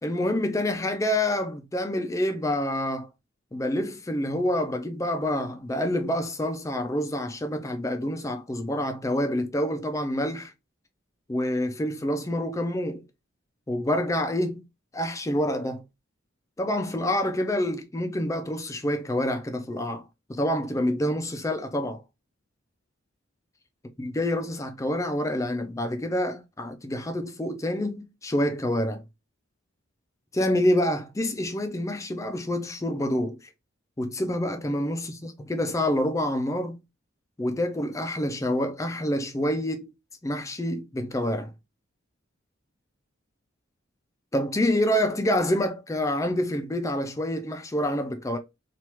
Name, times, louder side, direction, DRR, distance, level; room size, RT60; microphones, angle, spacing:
voice 1, 0.0-3.1 3.5-10.5 11.3-13.0 13.7-14.6 14.9-15.8 16.6-20.0 20.3-22.0 24.0-29.0 30.3-33.4 34.0-36.8 37.4-39.9 40.2-41.5 44.3-48.4, left 1 dB, 15° left, 0.5 m, -27 dB
3.0 x 2.4 x 3.2 m
head